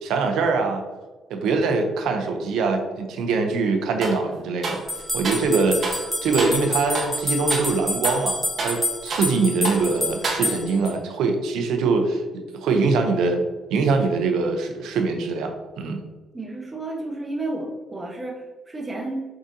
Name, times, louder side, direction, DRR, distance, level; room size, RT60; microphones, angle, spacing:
voice 1, 0.0-0.8 1.3-4.8 5.1-13.4 13.7-16.0, right 4 dB, 85° right, 5 dB, 0.7 m, -23 dB
sound 1, 4.0-4.2 4.6-5.5 5.8-6.0 6.4-6.6 6.9-7.2 7.5-7.7 8.0-9.4 9.6-9.9 10.2-10.8, right 3 dB, 50° right, 1.1 m, -30 dB
sound 2, 4.9-10.9, left 1 dB, ahead, 1.1 m, -28 dB
voice 2, 16.3-19.3, right 2 dB, 25° right, -1 dB, 1.3 m, -31 dB
4.9 x 3.7 x 2.7 m, 1.2 s
cardioid pair, 90°, 0 cm